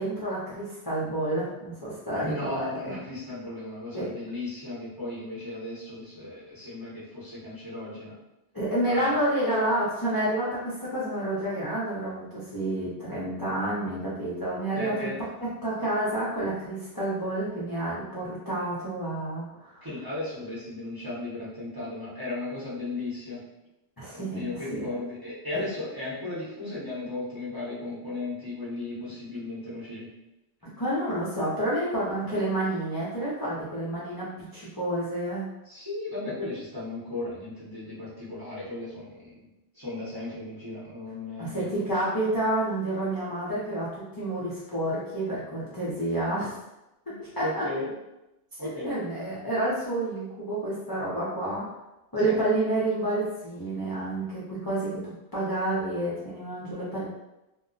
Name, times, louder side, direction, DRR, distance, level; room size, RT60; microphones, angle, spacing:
voice 1, 0.0-3.0 3.9-4.1 8.5-15.1 15.6-19.9 24.0-24.9 25.5-25.6 30.6-35.5 41.4-46.5 47.2-47.6 48.8-51.6 52.1-57.0, right 1 dB, 25° left, -9 dB, 0.5 m, -29 dB
voice 2, 2.2-8.1 8.8-9.2 14.7-15.2 19.8-23.4 24.1-30.1 35.7-39.5 39.7-41.8 47.0-47.9 48.6-48.9 52.2-52.5, left 2 dB, 20° right, -9 dB, 0.8 m, -36 dB
2.2 x 2.0 x 3.8 m, 0.95 s
omnidirectional pair, 1.2 m